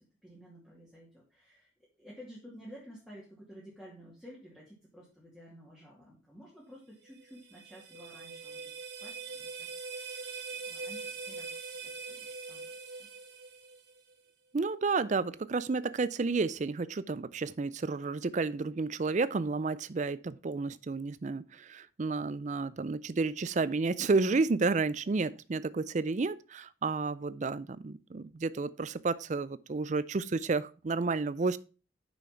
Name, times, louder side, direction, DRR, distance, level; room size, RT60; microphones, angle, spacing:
voice 1, 0.0-1.7 2.0-13.1, equal, 5° left, 2.4 m, -53 dB
sound 1, 7.1-14.1, right 4 dB, 55° right, 1.6 m, -43 dB
voice 2, 14.5-31.6, right 4 dB, 40° right, 0.4 m, -31 dB
6.5 x 6.3 x 5.8 m
head